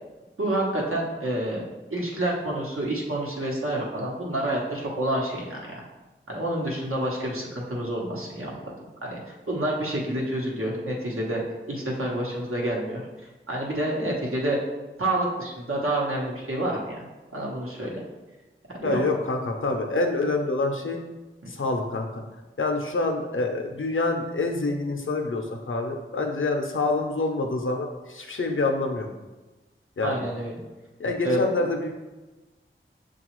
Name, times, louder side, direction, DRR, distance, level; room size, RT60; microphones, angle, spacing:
voice 1, 0.4-1.6 1.9-5.8 6.3-8.6 9.0-11.4 11.7-13.0 13.5-14.6 15.0-17.0 17.3-18.0 18.7-19.0 30.0-30.5 31.2-31.4, right 1 dB, 85° right, -3 dB, 0.9 m, -28 dB
voice 2, 18.8-21.0 21.5-22.2 22.6-29.1 30.0-30.2 31.0-31.9, left 2 dB, 70° left, 3 dB, 0.5 m, -26 dB
6.4 x 2.3 x 3.0 m, 1.2 s
wide cardioid pair, 55°, 21 cm